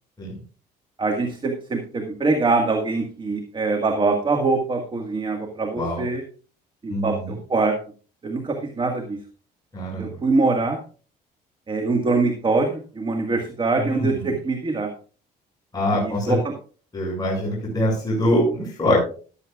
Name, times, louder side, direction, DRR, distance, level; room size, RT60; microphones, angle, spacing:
voice 1, 1.0-6.2 6.8-7.8 8.2-9.2 10.0-10.8 11.7-14.9 15.9-16.5, right 3 dB, 30° right, 4 dB, 1.8 m, -23 dB
voice 2, 5.8-6.1 6.9-7.3 9.7-10.2 13.8-14.3 15.7-16.4 16.9-19.1, left 1 dB, 25° left, -4 dB, 6.5 m, -24 dB
14.5 x 12.0 x 2.4 m, 0.38 s
cardioid pair, 110°, 17 cm